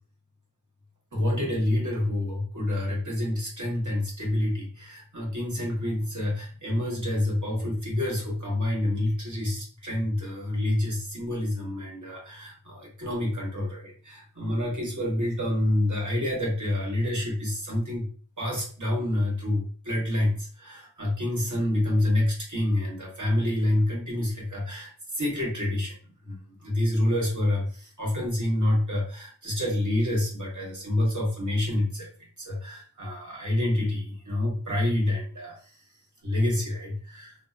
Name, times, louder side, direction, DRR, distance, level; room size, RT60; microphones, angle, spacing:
voice 1, 1.1-18.1 18.4-25.9 26.2-32.1 32.4-35.7 36.2-37.3, left 1 dB, 40° right, -3 dB, 1.2 m, -28 dB
2.7 x 2.1 x 2.3 m, 0.42 s
wide cardioid pair, 60°, 44 cm